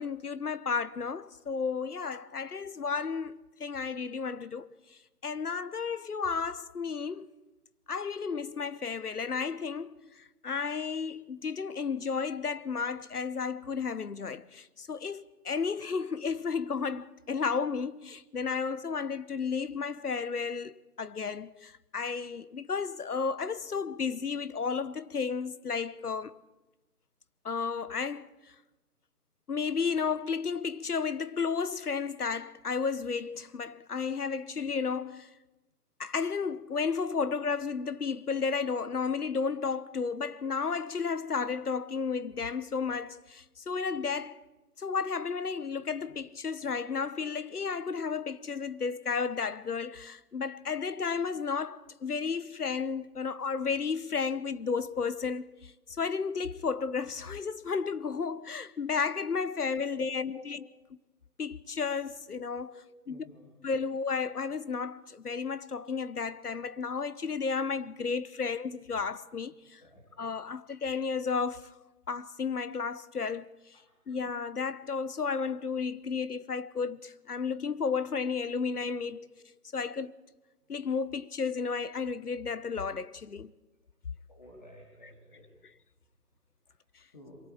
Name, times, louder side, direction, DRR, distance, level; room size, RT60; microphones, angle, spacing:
voice 1, 0.0-4.8 5.2-7.3 7.9-26.4 27.4-28.3 29.5-35.3 36.0-44.4 44.8-60.7 61.4-62.7 63.1-63.2 63.6-69.8 70.2-71.7 72.1-73.6 74.1-79.3 79.7-80.2 80.7-83.5, left 5 dB, 70° left, 1.1 m, -33 dB
voice 2, 59.9-60.4 62.7-62.8 63.1-63.5 69.8-70.1 73.7-73.9 84.3-85.5 87.1-87.4, left 1 dB, 30° left, 3.6 m, -51 dB
23.0 x 18.0 x 8.5 m
figure-of-eight pair, 175°, 48 cm